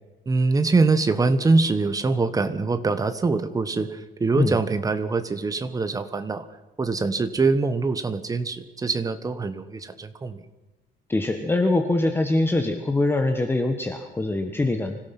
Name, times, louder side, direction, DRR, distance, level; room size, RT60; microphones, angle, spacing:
voice 1, 0.3-6.4 6.8-10.4, right 3 dB, 20° right, 10 dB, 1.3 m, -23 dB
voice 2, 11.1-15.0, left 2 dB, 10° left, 5 dB, 1.4 m, -23 dB
25.5 x 17.0 x 6.0 m, 1.1 s
cardioid pair, 160°, 19 cm